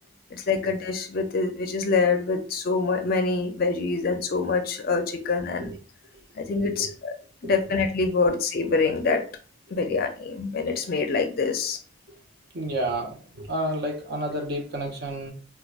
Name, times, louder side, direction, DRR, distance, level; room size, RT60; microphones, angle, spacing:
voice 1, 0.3-5.7 6.4-7.1 7.4-9.2 9.7-11.8, left 4 dB, 45° left, 6 dB, 0.4 m, -25 dB
voice 2, 12.5-15.3, right 1 dB, 50° right, 1 dB, 0.7 m, -30 dB
4.4 x 2.3 x 2.3 m, 0.40 s
head